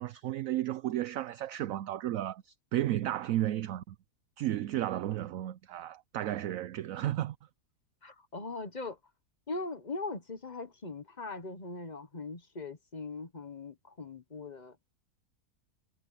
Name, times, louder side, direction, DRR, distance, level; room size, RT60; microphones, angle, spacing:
voice 1, 0.0-3.9 4.4-7.4, right 13 dB, 70° right, 0.9 m, -33 dB
voice 2, 8.0-9.0 9.5-14.7, left 3 dB, 30° left, 1.2 m, -40 dB
omnidirectional pair, 1.7 m